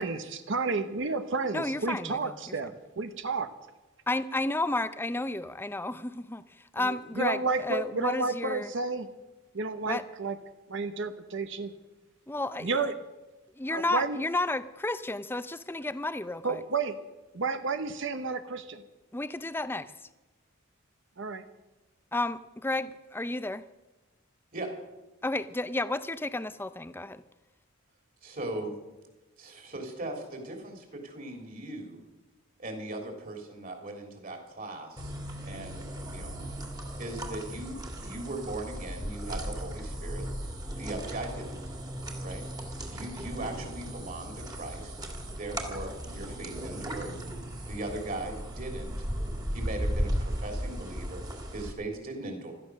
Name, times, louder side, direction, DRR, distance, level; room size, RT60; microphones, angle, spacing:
voice 1, 0.0-3.5 6.8-9.1 9.5-10.4 10.7-11.7 12.6-13.0 13.7-14.2 16.4-17.0 17.3-18.8 21.2-21.4, right 4 dB, 60° right, 9 dB, 0.9 m, -31 dB
voice 2, 1.5-2.4 4.1-6.4 6.7-8.7 9.8-10.0 12.3-12.9 13.6-16.6 19.1-19.9 22.1-23.6 25.2-27.2, left 2 dB, 10° left, 13 dB, 0.5 m, -32 dB
voice 3, 28.2-28.7 29.4-32.0 32.6-35.1 35.4-36.3 37.0-40.3 40.8-41.6 42.2-42.4 42.9-44.9 45.3-47.1 47.7-48.9 49.5-51.2 51.5-52.5, right 2 dB, 40° right, 3 dB, 3.5 m, -39 dB
sound 1, 35.0-51.7, equal, 20° right, 2.1 m, -36 dB
16.0 x 13.0 x 6.5 m, 1.1 s
head